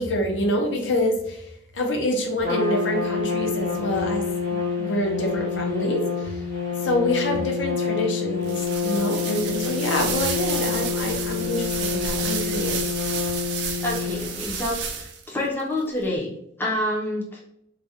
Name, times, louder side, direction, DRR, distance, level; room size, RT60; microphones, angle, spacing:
voice 1, 0.0-6.4 6.8-12.8, left 1 dB, 75° left, 2 dB, 0.5 m, -26 dB
Trumpet, 2.4-14.6, left 5 dB, 50° left, 1.0 m, -27 dB
sound 1, 8.4-15.3, right 6 dB, 65° right, 0.3 m, -31 dB
voice 2, 13.8-16.3 16.6-17.4, left 1 dB, 10° left, -4 dB, 0.4 m, -27 dB
2.4 x 2.1 x 2.7 m, 0.76 s
head